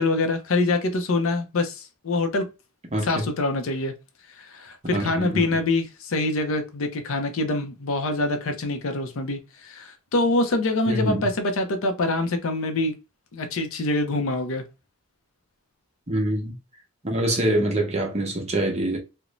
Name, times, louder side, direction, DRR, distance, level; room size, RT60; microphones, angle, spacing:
voice 1, 0.0-2.5 3.1-3.9 4.4-12.9 13.3-14.6, left 2 dB, 60° left, 0.5 m, -25 dB
voice 2, 2.9-3.3 4.9-5.5 10.9-11.3 16.1-16.5 17.0-19.0, right 1 dB, 30° right, 0.7 m, -25 dB
2.5 x 2.1 x 2.9 m
head